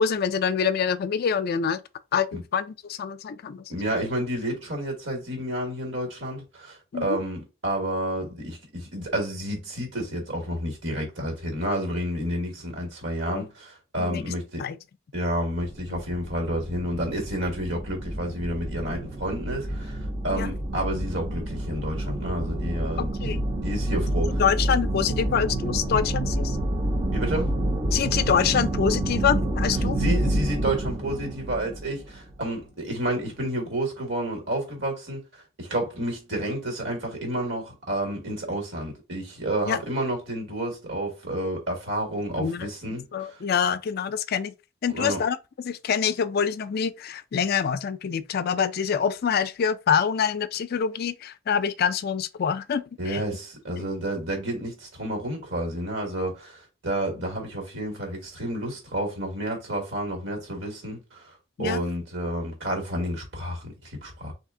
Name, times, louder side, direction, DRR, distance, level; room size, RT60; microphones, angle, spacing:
voice 1, 0.0-1.8 2.1-3.8 6.9-7.2 13.3-13.4 14.0-14.2 14.6-14.8 15.9-16.0 20.3-20.5 23.0-23.5 24.4-26.6 27.9-30.0 39.7-39.8 42.4-42.7 43.1-44.5 44.8-45.4 45.6-53.2 53.8-53.9 61.6-61.8, left 7 dB, 55° left, 0.4 m, -26 dB
voice 2, 3.7-14.7 15.1-20.0 20.2-24.4 27.1-27.5 29.9-35.2 35.6-43.4 44.9-45.2 53.0-61.3 61.6-64.3, right 1 dB, 75° right, 1.7 m, -30 dB
sound 1, 15.6-32.6, right 1 dB, 30° right, 0.5 m, -28 dB
3.3 x 2.7 x 3.7 m
head